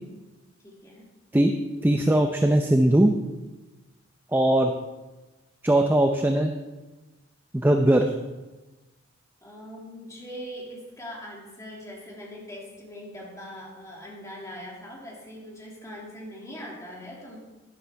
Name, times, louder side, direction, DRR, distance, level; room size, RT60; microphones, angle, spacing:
voice 1, 0.6-1.1 9.4-17.4, equal, 15° left, -3 dB, 2.4 m, -41 dB
voice 2, 1.8-3.1 4.3-4.7 5.6-6.6 7.5-8.1, right 1 dB, 10° right, 4 dB, 0.5 m, -20 dB
12.5 x 11.0 x 3.4 m, 1.2 s
head